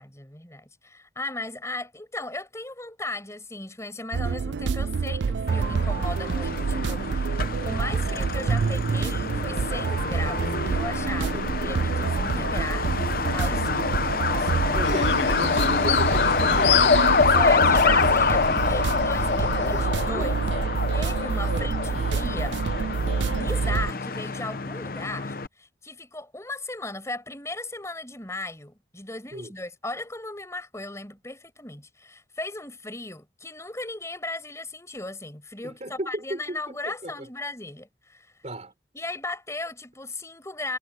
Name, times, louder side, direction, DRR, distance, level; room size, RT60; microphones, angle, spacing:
voice 1, 0.0-13.8 14.3-14.7 17.2-20.4 20.9-22.6 23.2-38.3 38.9-40.8, left 2 dB, 15° left, 5.7 m, -36 dB
sound 1, 4.1-23.9, right 5 dB, 90° right, 0.4 m, -27 dB
Truck, 5.5-25.5, left 4 dB, 55° left, 0.8 m, -26 dB
voice 2, 14.7-17.0 19.6-20.4 21.5-21.8 29.3-29.5 35.6-37.3 38.4-38.7, right 1 dB, 40° right, 4.3 m, -36 dB
sound 2, 14.8-19.9, left 8 dB, 85° left, 0.8 m, -30 dB
head